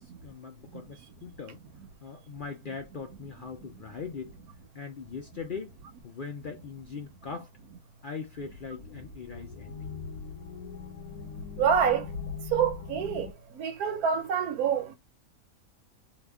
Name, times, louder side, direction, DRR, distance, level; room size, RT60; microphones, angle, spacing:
voice 1, 0.0-1.6 2.0-4.4 4.7-5.8 6.0-7.5 8.0-9.9, left 5 dB, 55° left, 0.6 m, -40 dB
sound 1, 8.3-13.3, left 5 dB, 85° left, 1.2 m, -40 dB
voice 2, 11.6-12.0 12.5-13.3 13.6-15.0, right 7 dB, 90° right, 1.2 m, -26 dB
2.8 x 2.5 x 3.3 m
omnidirectional pair, 1.5 m